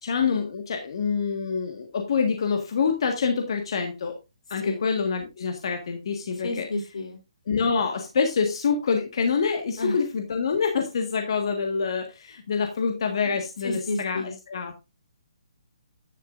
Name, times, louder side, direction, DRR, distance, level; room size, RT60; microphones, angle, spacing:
voice 1, 0.0-4.2 4.5-6.7 7.5-14.9, left 5 dB, 50° left, 4 dB, 1.7 m, -26 dB
voice 2, 6.4-7.2 9.8-9.9 13.3-13.4 13.6-14.3, left 2 dB, 80° left, 5 dB, 3.1 m, -30 dB
11.0 x 10.5 x 2.6 m, 0.25 s
hypercardioid pair, 170°, 3 cm